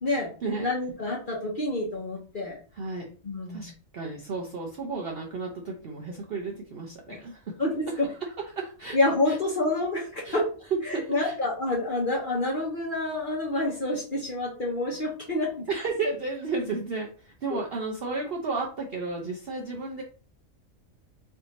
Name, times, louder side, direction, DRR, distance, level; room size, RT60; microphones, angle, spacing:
voice 1, 0.1-0.7 2.7-3.1 3.5-7.6 8.1-9.0 9.3-9.4 10.2-10.4 10.7-11.4 15.7-20.0, right 4 dB, 55° right, -1 dB, 0.7 m, -33 dB
voice 2, 0.6-2.6 3.2-3.7 7.1-7.2 7.6-8.1 8.9-10.5 10.8-15.7 17.5-17.6, left 2 dB, 45° left, -2 dB, 0.8 m, -28 dB
3.3 x 2.7 x 4.0 m, 0.38 s
omnidirectional pair, 1.5 m